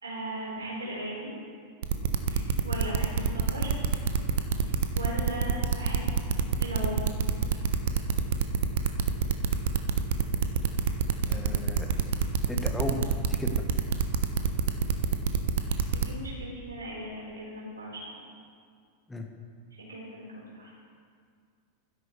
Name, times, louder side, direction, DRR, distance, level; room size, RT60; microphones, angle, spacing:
voice 1, 0.0-1.3 2.3-3.7 4.6-6.1 6.6-7.1 15.9-18.1 19.7-20.7, right 1 dB, 75° right, -5 dB, 3.7 m, -38 dB
sound 1, 1.8-16.1, right 7 dB, 55° right, 0.8 m, -26 dB
voice 2, 11.3-11.9 12.5-13.6 19.1-19.3, left 1 dB, 5° left, 3 dB, 1.4 m, -35 dB
15.5 x 12.5 x 3.2 m, 2.1 s
figure-of-eight pair, 90°, 0 cm